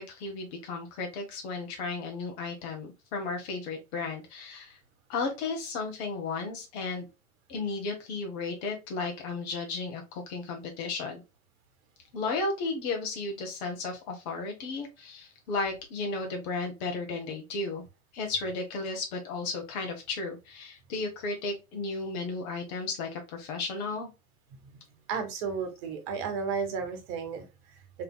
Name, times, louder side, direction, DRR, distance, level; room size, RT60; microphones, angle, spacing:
voice 1, 0.0-4.8 5.1-7.1 7.5-11.2 12.1-17.8 18.1-24.1, left 3 dB, 45° left, 2 dB, 1.4 m, -34 dB
voice 2, 25.1-27.4, right 5 dB, 40° right, 7 dB, 1.2 m, -33 dB
3.5 x 3.4 x 2.3 m, 0.25 s
hypercardioid pair, 110°, 45 cm